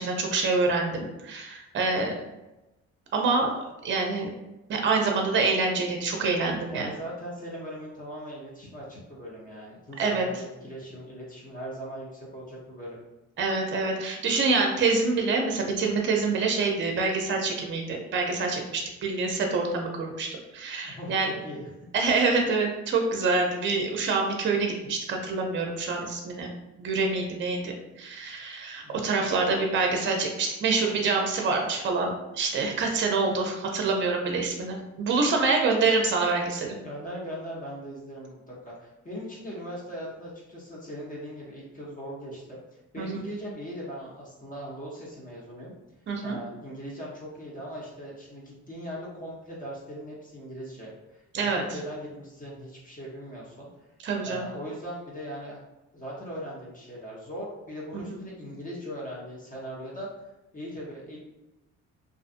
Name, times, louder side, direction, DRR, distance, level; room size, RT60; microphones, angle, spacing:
voice 1, 0.0-2.1 3.1-3.6 3.8-4.3 4.7-6.9 10.0-10.3 13.4-20.3 20.5-21.3 21.9-26.5 26.8-36.7 43.0-43.1 46.1-46.4 51.3-51.6 54.0-54.5 57.9-58.2, right 4 dB, 40° right, 2 dB, 0.5 m, -26 dB
voice 2, 6.7-13.0 20.8-21.7 28.8-29.1 36.8-42.6 42.9-45.7 46.2-51.2 51.5-53.7 54.2-55.6 55.9-60.1 60.5-61.2, equal, 25° left, -5 dB, 0.8 m, -39 dB
2.5 x 2.4 x 2.5 m, 0.98 s
cardioid pair, 90°, 30 cm